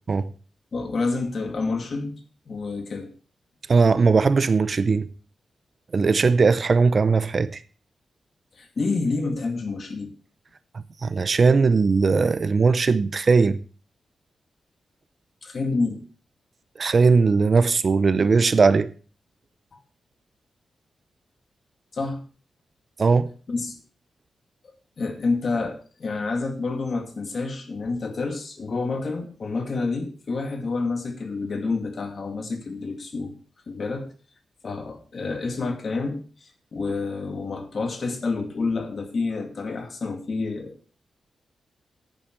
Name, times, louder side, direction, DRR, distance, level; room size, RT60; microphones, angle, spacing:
voice 1, 0.7-2.2 2.5-3.1 8.6-10.1 15.4-16.0 19.7-19.8 21.9-22.2 23.5-23.8 25.0-33.3 33.7-34.1 34.6-41.0, left 3 dB, 50° left, 2.3 m, -28 dB
voice 2, 3.7-5.1 5.9-7.5 11.0-13.6 16.8-18.9 23.0-23.3, right 4 dB, 45° right, 0.6 m, -19 dB
10.5 x 10.0 x 4.6 m
wide cardioid pair, 115°, 0 cm